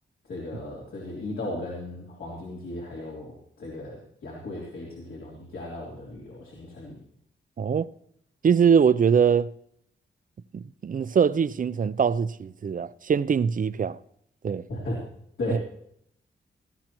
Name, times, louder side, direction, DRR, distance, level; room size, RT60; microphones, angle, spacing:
voice 1, 0.3-7.0 14.7-15.0 15.4-15.6, left 2 dB, 85° left, 3.4 m, -36 dB
voice 2, 7.6-7.9 8.4-9.5 10.5-14.0 14.4-14.6, right 7 dB, 45° right, 0.4 m, -22 dB
18.0 x 15.0 x 3.0 m
wide cardioid pair, 120°, 20 cm